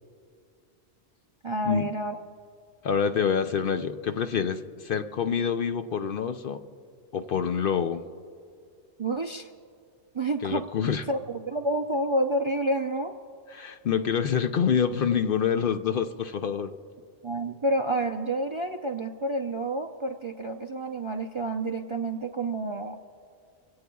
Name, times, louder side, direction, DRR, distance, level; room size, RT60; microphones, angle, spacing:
voice 1, 1.4-2.2 9.0-9.5 10.1-10.6 11.1-13.1 17.2-23.0, right 1 dB, 35° right, 3 dB, 0.5 m, -29 dB
voice 2, 2.8-6.6 7.1-8.0 10.4-11.0 13.5-16.7, left 7 dB, 60° left, 8 dB, 0.7 m, -26 dB
25.5 x 17.5 x 2.3 m, 2.3 s
omnidirectional pair, 1.2 m